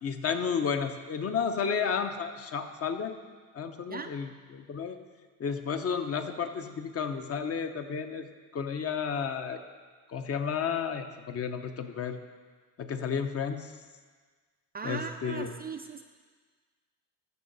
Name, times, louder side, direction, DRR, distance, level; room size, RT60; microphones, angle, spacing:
voice 1, 0.0-3.1 3.5-5.0 5.4-8.3 8.5-9.6 10.1-12.2 12.8-13.7 14.8-15.5, left 6 dB, 40° left, 7 dB, 0.8 m, -32 dB
voice 2, 14.7-16.0, right 5 dB, 25° right, 6 dB, 0.3 m, -38 dB
13.5 x 5.9 x 4.0 m, 1.5 s
cardioid pair, 105°, 37 cm